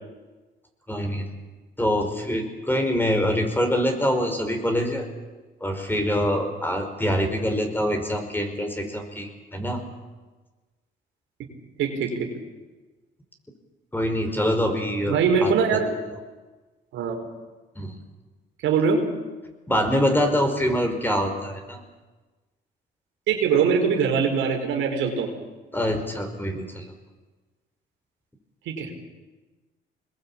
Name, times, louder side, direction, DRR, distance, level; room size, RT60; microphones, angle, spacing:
voice 1, 0.9-1.3 1.8-5.0 5.6-9.8 13.9-15.5 17.8-18.0 19.7-21.8 25.7-26.9, equal, 10° left, 5 dB, 5.3 m, -25 dB
voice 2, 11.8-12.3 15.1-15.9 16.9-17.2 18.6-19.1 23.3-25.3 28.7-29.0, right 6 dB, 90° right, 2 dB, 4.7 m, -22 dB
25.5 x 21.0 x 8.8 m, 1.3 s
cardioid pair, 90°, 20 cm